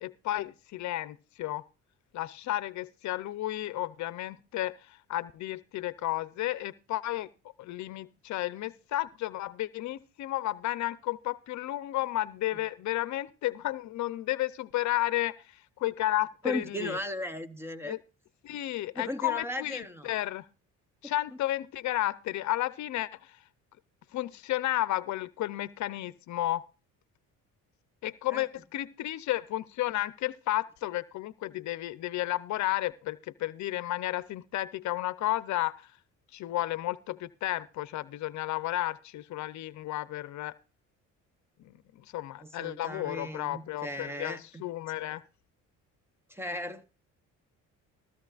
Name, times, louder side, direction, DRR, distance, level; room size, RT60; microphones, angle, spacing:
voice 1, 0.0-1.6 2.1-7.3 7.6-17.0 17.8-18.0 18.4-20.5 21.0-23.4 24.1-26.7 28.0-35.9 36.3-40.6 41.6-45.2, left 15 dB, 65° left, 0.7 m, -32 dB
voice 2, 16.4-18.0 19.0-20.1 21.0-21.1 28.3-28.5 42.4-44.6 45.0-45.2 46.3-46.8, left 1 dB, 10° right, 0.8 m, -37 dB
16.0 x 13.5 x 2.5 m
cardioid pair, 125°, 32 cm